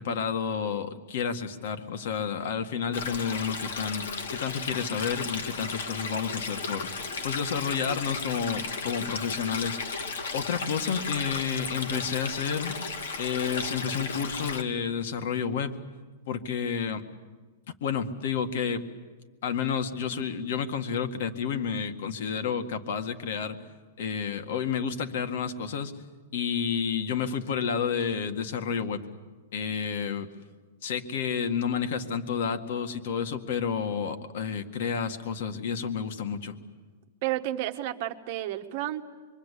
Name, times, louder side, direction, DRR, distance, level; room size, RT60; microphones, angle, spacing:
voice 1, 0.0-4.1 4.4-6.9 7.2-9.9 10.3-12.7 13.2-15.8 16.3-17.0 17.8-18.8 19.4-23.6 24.0-25.9 26.3-29.0 29.5-30.3 30.8-36.5, left 6 dB, 55° left, 7 dB, 2.0 m, -30 dB
Stream, 2.9-14.6, left 4 dB, 85° left, 2.8 m, -34 dB
voice 2, 37.2-39.0, right 14 dB, 40° right, 7 dB, 1.3 m, -31 dB
26.5 x 24.0 x 8.5 m, 1.3 s
supercardioid pair, 170°, 0 cm